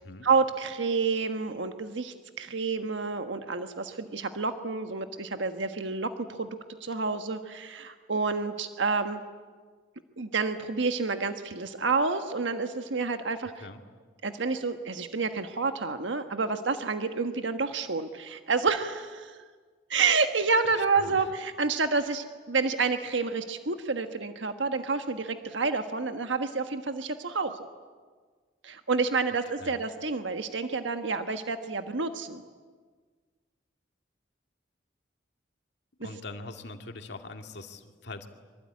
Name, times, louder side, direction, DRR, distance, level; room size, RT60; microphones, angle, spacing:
voice 1, 0.2-9.2 10.2-13.5 14.2-19.4 19.9-27.6 28.6-32.4 36.0-36.1, right 4 dB, 80° right, 7 dB, 1.4 m, -29 dB
voice 2, 20.6-21.2 29.6-29.8 36.0-38.3, left 2 dB, 65° left, 5 dB, 2.2 m, -42 dB
25.0 x 24.5 x 9.7 m, 1.5 s
head